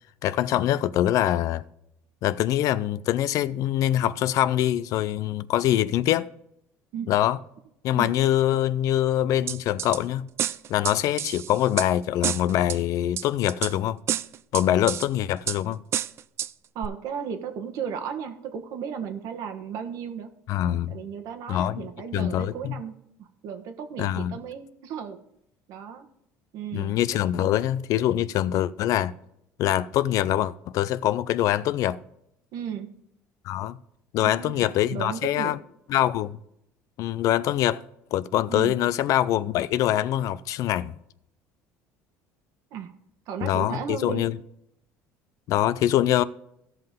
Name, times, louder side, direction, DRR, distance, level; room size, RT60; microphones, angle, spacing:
voice 1, 0.2-1.6 2.2-6.3 7.1-7.4 7.8-10.3 10.7-14.0 14.5-15.8 20.5-21.0 21.5-22.7 24.0-24.4 26.7-29.1 29.6-32.0 33.5-33.8 34.1-35.6 35.9-36.4 37.0-37.8 38.1-40.9 43.4-44.4 45.5-46.2, left 12 dB, 60° left, 0.5 m, -24 dB
sound 1, 9.5-10.0 10.4-11.9 12.2-12.8 13.2-13.7 14.1-15.1 15.5-15.6 15.9-16.5 16.8-16.9, right 10 dB, 45° right, 0.4 m, -29 dB
voice 2, 16.7-20.3 20.6-22.9 23.2-25.2 25.7-26.1 26.5-26.9 27.4-27.5 32.5-32.9 34.2-35.5 38.5-38.7 42.7-42.9 43.3-44.2, right 7 dB, 65° right, 1.3 m, -35 dB
16.0 x 5.7 x 3.6 m
supercardioid pair, 110°, 6 cm